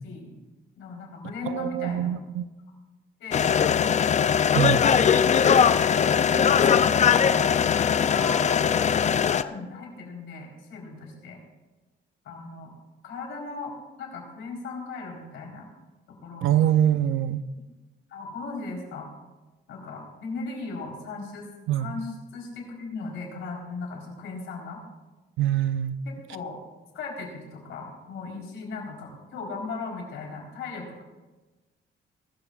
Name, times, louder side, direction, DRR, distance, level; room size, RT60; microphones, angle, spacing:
voice 1, 0.8-2.2 3.2-3.5 4.3-5.2 5.9-8.8 9.3-11.4 12.2-12.7 13.0-15.7 16.1-16.5 18.1-19.1 19.7-21.5 21.8-24.8 26.3-26.6 26.9-31.0, left 4 dB, 80° left, -1 dB, 4.1 m, -37 dB
voice 2, 1.4-2.5 4.5-4.8 16.4-17.4 21.7-22.0 25.4-26.0, right 11 dB, 85° right, 13 dB, 0.6 m, -24 dB
sound 1, 3.3-9.4, left 7 dB, 35° left, 0.5 m, -20 dB
Wind instrument woodwind instrument, 4.1-8.5, left 3 dB, 15° left, 1.4 m, -43 dB
21.0 x 13.0 x 2.5 m, 1.2 s
cardioid pair, 90°, 20 cm